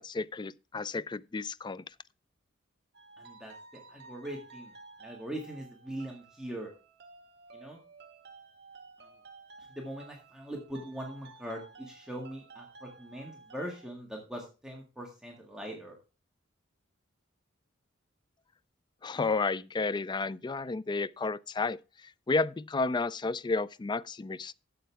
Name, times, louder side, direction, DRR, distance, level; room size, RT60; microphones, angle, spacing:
voice 1, 0.0-1.8 19.0-24.5, left 3 dB, 20° left, 0.4 m, -32 dB
sound 1, 2.9-13.9, right 3 dB, 55° right, 1.7 m, -53 dB
voice 2, 3.2-3.5 3.9-4.7 5.0-6.7 7.5-7.8 9.0-9.1 9.7-16.0, right 1 dB, 5° right, 1.8 m, -41 dB
12.0 x 7.9 x 3.4 m
head